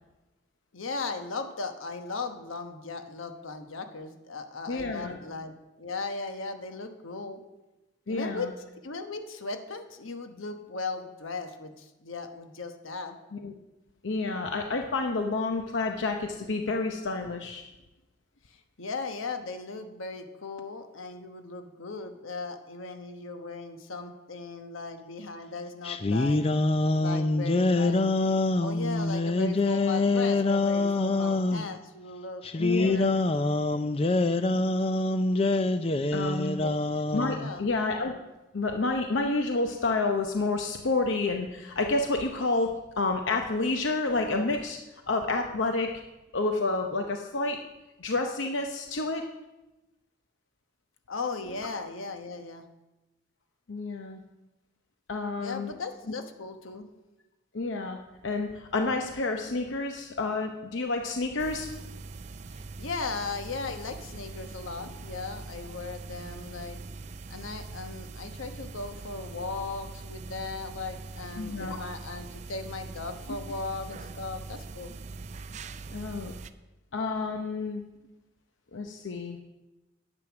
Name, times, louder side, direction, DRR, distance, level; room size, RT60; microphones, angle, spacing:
voice 1, 0.7-7.4 8.1-8.5 8.8-13.2 18.5-26.4 27.0-28.1 28.6-33.1 33.7-33.9 36.6-36.7 37.4-37.6 51.1-52.7 55.4-56.9 62.5-66.8 67.3-74.9, left 3 dB, 90° left, 7 dB, 1.1 m, -37 dB
voice 2, 4.7-5.2 8.1-8.5 13.3-13.5 14.0-17.6 32.6-33.1 36.1-36.6 37.1-38.1 38.5-44.8 45.1-45.9 46.3-47.6 48.0-49.2 53.7-54.2 55.1-55.7 57.5-61.7 71.4-71.8 75.9-76.3 76.9-77.8 78.7-79.4, left 3 dB, 70° left, 4 dB, 0.7 m, -29 dB
sound 1, 25.8-31.6 32.4-37.5, left 2 dB, 30° left, 0.4 m, -25 dB
sound 2, 61.4-76.5, right 3 dB, 35° right, 0.4 m, -42 dB
10.5 x 8.0 x 6.0 m, 1.0 s
head